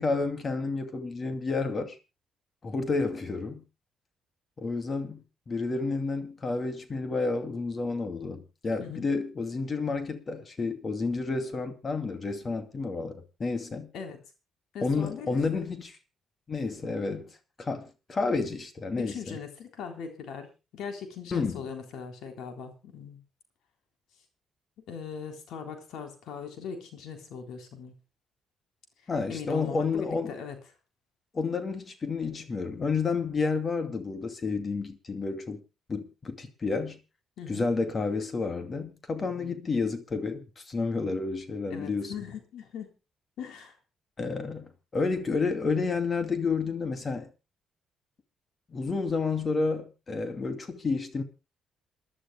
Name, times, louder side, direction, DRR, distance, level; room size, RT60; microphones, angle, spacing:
voice 1, 0.0-2.0 2.6-3.6 4.6-13.9 14.8-16.0 16.5-17.3 17.6-19.4 21.3-21.6 29.1-30.3 31.3-35.6 35.9-37.0 37.5-42.1 44.2-47.3 48.7-51.2, left 4 dB, 35° left, 2.4 m, -30 dB
voice 2, 14.7-15.6 19.0-20.5 20.7-23.2 24.9-27.9 29.3-30.6 37.4-37.7 39.2-39.6 41.7-42.9 43.4-43.7, left 6 dB, 80° left, 3.6 m, -40 dB
28.5 x 11.5 x 2.2 m
cardioid pair, 90°, 0 cm